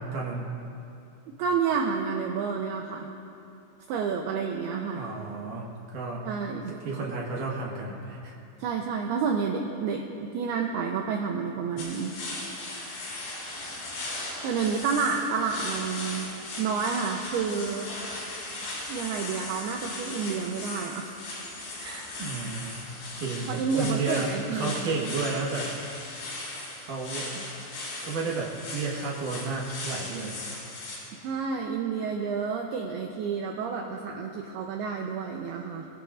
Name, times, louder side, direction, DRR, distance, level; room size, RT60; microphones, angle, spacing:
voice 1, 0.1-0.5 4.9-6.2 6.7-8.3 22.2-22.8 23.2-25.7 26.8-27.4 28.0-30.4, right 4 dB, 60° right, -2 dB, 2.4 m, -32 dB
voice 2, 1.4-3.1 3.9-5.0 6.2-6.7 8.6-12.1 14.4-16.3 16.6-17.9 18.9-21.1 21.8-22.1 23.5-24.9 31.2-35.9, right 5 dB, 80° right, 2 dB, 2.4 m, -30 dB
sound 1, 11.8-31.0, left 2 dB, 80° left, 6.7 m, -38 dB
26.0 x 17.0 x 2.5 m, 2.8 s
omnidirectional pair, 5.3 m